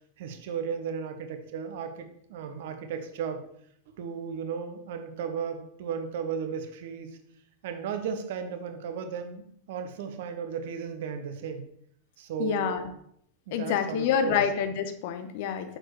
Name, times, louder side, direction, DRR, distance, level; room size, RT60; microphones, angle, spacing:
voice 1, 0.2-3.4 4.0-7.2 7.6-11.7 12.2-12.8 13.5-14.4, right 6 dB, 55° right, 8 dB, 0.8 m, -35 dB
voice 2, 12.4-12.9 13.5-15.8, left 8 dB, 50° left, 8 dB, 0.6 m, -27 dB
6.5 x 6.2 x 3.0 m, 0.69 s
figure-of-eight pair, 90°, 0 cm